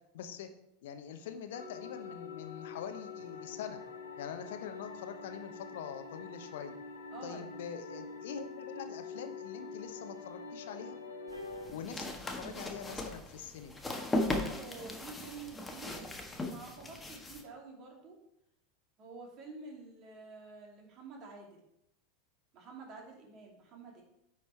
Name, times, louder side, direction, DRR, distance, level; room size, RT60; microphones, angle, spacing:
voice 1, 0.1-0.5 0.8-3.8 4.2-6.7 7.2-10.9 11.7-13.8, left 8 dB, 65° left, 8 dB, 0.9 m, -44 dB
sound 1, 1.5-11.7, left 4 dB, 85° left, 1.2 m, -46 dB
voice 2, 7.1-7.5 14.3-15.9 16.4-18.2 19.0-21.6 22.5-24.0, right 4 dB, 45° right, 0 dB, 2.6 m, -49 dB
sound 2, 11.3-17.4, left 1 dB, 10° left, 1.4 m, -38 dB
sound 3, 11.3-13.8 14.8-15.0, left 2 dB, 90° right, 1.2 m, -53 dB
9.9 x 4.7 x 4.5 m, 0.81 s
figure-of-eight pair, 85°, 0 cm